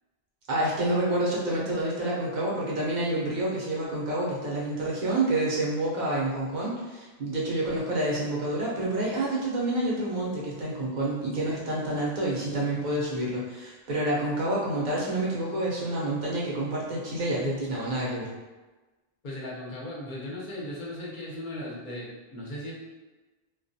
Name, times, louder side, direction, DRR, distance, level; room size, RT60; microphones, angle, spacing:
voice 1, 0.5-18.3, right 1 dB, 50° right, -5 dB, 0.7 m, -28 dB
voice 2, 19.2-22.7, left 1 dB, 55° left, -6 dB, 0.8 m, -37 dB
2.2 x 2.2 x 2.6 m, 1.2 s
omnidirectional pair, 1.0 m